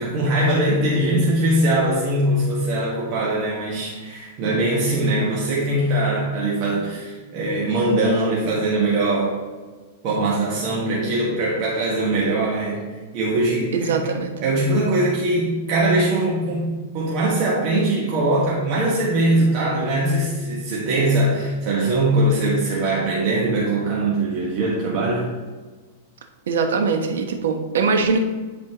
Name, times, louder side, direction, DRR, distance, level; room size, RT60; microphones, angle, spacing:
voice 1, 0.0-9.4 10.0-14.0 14.4-25.3, right 1 dB, 45° right, -5 dB, 1.3 m, -21 dB
voice 2, 13.7-14.3 26.5-28.2, right 5 dB, 85° right, 4 dB, 1.0 m, -21 dB
11.0 x 4.2 x 3.0 m, 1.3 s
supercardioid pair, 150°, 0 cm